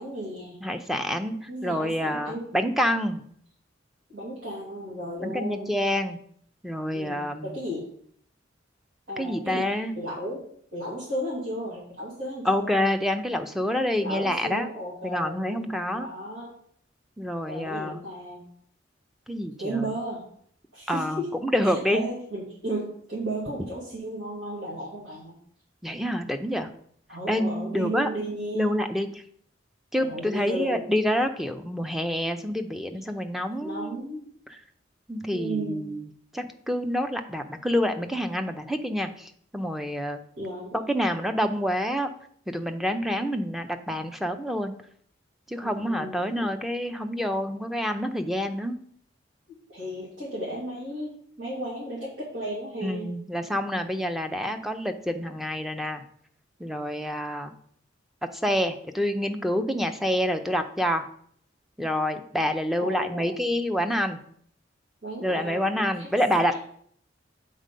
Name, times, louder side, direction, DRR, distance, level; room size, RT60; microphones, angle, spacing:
voice 1, 0.0-0.6 1.5-2.4 4.1-5.7 6.9-7.9 9.1-10.4 10.7-12.7 14.0-16.5 17.4-18.4 19.6-20.2 20.7-21.3 21.6-25.4 27.1-28.7 30.0-30.8 33.6-34.2 35.3-35.8 40.4-40.8 45.6-46.5 49.7-51.1 51.4-53.1 62.8-63.3 65.0-66.1 66.4-66.6, right 1 dB, 75° right, -9 dB, 2.7 m, -34 dB
voice 2, 0.6-3.2 5.2-6.2 6.6-7.6 9.2-9.9 12.4-14.7 15.0-16.1 17.2-18.0 19.3-19.9 20.9-22.0 25.8-26.7 27.3-28.1 28.5-29.2 29.9-34.2 34.5-34.6 35.1-36.1 36.3-40.2 40.7-42.1 42.5-44.7 45.5-48.8 52.8-56.0 56.6-57.5 58.4-61.0 61.8-64.2 65.2-66.6, equal, ahead, 7 dB, 0.5 m, -27 dB
7.7 x 4.2 x 5.3 m, 0.63 s
head